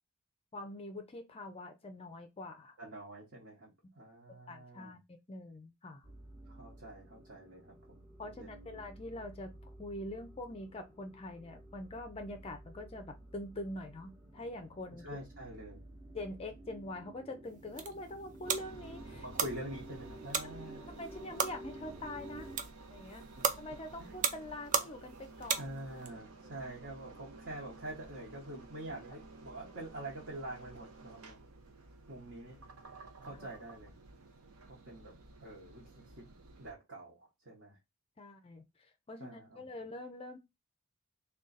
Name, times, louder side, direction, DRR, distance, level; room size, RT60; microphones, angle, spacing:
voice 1, 0.5-2.7 3.8-3.9 4.5-6.1 8.2-15.0 16.1-19.2 20.4-20.5 21.0-22.5 22.9-23.2 23.6-25.6 33.4-33.5 38.2-40.4, left 1 dB, 25° left, 0.4 m, -44 dB
voice 2, 2.8-5.0 6.5-8.8 15.0-15.8 19.1-20.9 23.4-23.5 24.0-24.1 25.5-31.4 32.1-32.6 33.2-33.9 34.7-37.8 39.2-39.7, right 1 dB, 55° right, 1.0 m, -46 dB
sound 1, 6.0-22.6, right 1 dB, 15° right, 0.8 m, -52 dB
sound 2, 17.5-26.1, right 6 dB, 35° right, 0.4 m, -38 dB
Engine, 18.4-36.7, right 2 dB, 80° right, 0.7 m, -53 dB
3.7 x 2.3 x 3.9 m
head